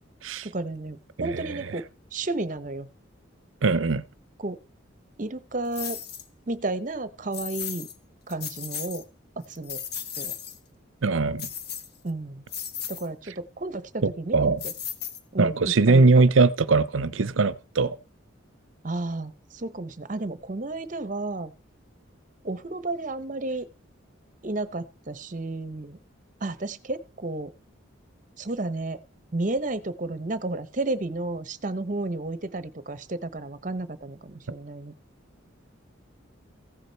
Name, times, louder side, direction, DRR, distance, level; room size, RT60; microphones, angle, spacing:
voice 1, 0.4-2.9 4.4-4.6 5.2-6.0 6.5-7.9 8.3-9.1 9.4-9.8 10.2-10.3 12.0-12.4 12.9-14.7 15.3-16.3 18.8-21.5 22.4-23.7 24.4-26.0 26.4-27.5 28.4-29.0 29.3-34.9, right 2 dB, 40° right, 0.8 m, -32 dB
voice 2, 3.6-4.0 11.0-11.5 14.0-14.6 15.4-18.0, right 3 dB, 75° right, 0.7 m, -21 dB
sound 1, 5.7-6.3 7.3-8.0 8.3-9.0 9.4-10.6 11.4-12.1 12.5-13.1 14.6-15.5, left 8 dB, 50° left, 1.3 m, -35 dB
15.5 x 8.1 x 4.5 m
head